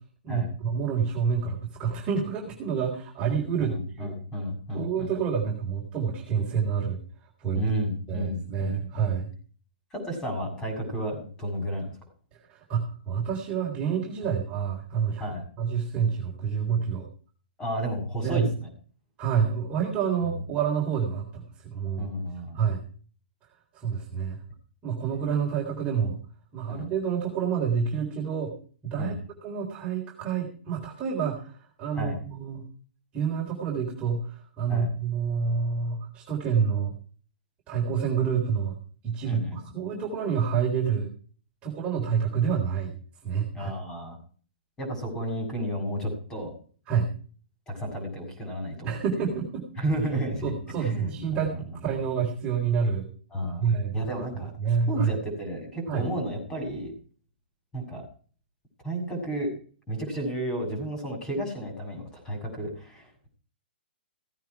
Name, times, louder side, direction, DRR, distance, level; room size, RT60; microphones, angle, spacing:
voice 1, 0.2-4.1 4.7-7.0 7.4-7.6 8.1-9.3 12.7-15.2 15.6-17.1 18.2-18.5 19.2-22.1 22.5-22.8 23.7-24.4 24.8-26.2 26.5-28.5 28.8-32.6 33.1-34.2 34.6-36.9 37.7-38.8 39.0-41.1 41.6-42.9 43.2-43.7 46.9-47.1 48.8-49.6 50.1-51.5 51.8-53.1 53.6-53.9 54.6-55.1 55.9-56.1, right 7 dB, 20° right, -2 dB, 3.8 m, -28 dB
voice 2, 3.7-5.1 7.5-9.2 9.9-12.0 14.2-14.3 15.2-15.4 17.6-18.7 20.2-20.4 22.0-22.8 26.7-26.9 29.0-29.2 32.0-32.2 34.7-34.9 39.2-39.7 43.5-44.2 44.8-46.5 47.7-49.3 49.8-50.5 50.8-51.7 53.3-56.9 57.7-58.0 58.8-59.5 59.9-63.3, right 1 dB, 10° left, 3 dB, 6.7 m, -32 dB
17.0 x 9.2 x 4.8 m, 0.42 s
hypercardioid pair, 155°, 6 cm